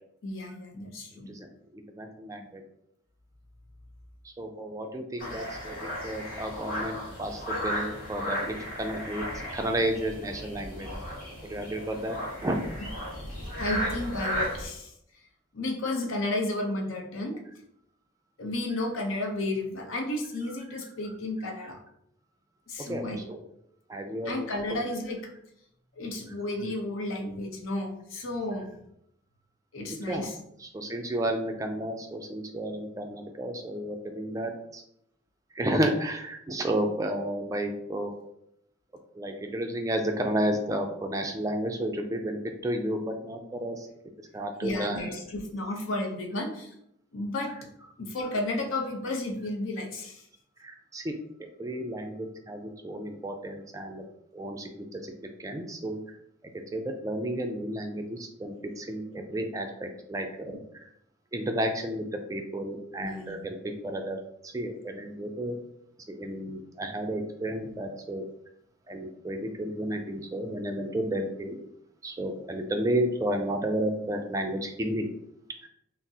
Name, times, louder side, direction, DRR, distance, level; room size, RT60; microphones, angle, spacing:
voice 1, 0.2-1.3 13.6-14.9 15.5-17.4 18.4-21.8 22.7-23.2 24.2-25.2 25.9-28.7 29.7-30.3 44.6-46.7 47.1-47.6 48.0-50.3 60.5-60.6 63.0-63.4, left 2 dB, 70° left, 2 dB, 0.7 m, -32 dB
voice 2, 1.7-2.6 4.2-10.9 11.4-12.6 22.8-23.4 23.9-24.8 29.9-30.3 30.6-34.8 35.5-38.1 39.2-43.9 44.3-45.0 50.6-51.1 51.4-54.0 54.3-55.0 55.4-56.0 56.7-60.6 60.8-60.9 61.3-63.6 63.8-64.2 64.5-65.6 66.1-68.2 68.9-71.6 72.0-75.1, right 1 dB, 15° right, 4 dB, 0.3 m, -32 dB
sound 1, 5.2-14.6, equal, 40° left, 1.3 m, -35 dB
5.8 x 2.0 x 2.7 m, 0.76 s
head